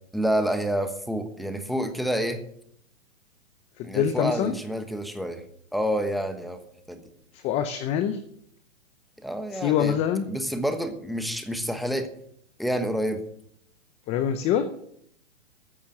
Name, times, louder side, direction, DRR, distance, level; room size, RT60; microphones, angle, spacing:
voice 1, 0.1-2.4 3.8-5.4 5.7-6.6 6.9-7.0 9.2-10.0 10.3-12.1 12.6-13.2, equal, ahead, 8 dB, 1.2 m, -28 dB
voice 2, 3.8-4.5 7.3-8.2 9.5-10.3 14.1-14.7, left 9 dB, 15° left, 11 dB, 0.6 m, -25 dB
14.5 x 7.2 x 9.3 m, 0.69 s
hypercardioid pair, 140°, 39 cm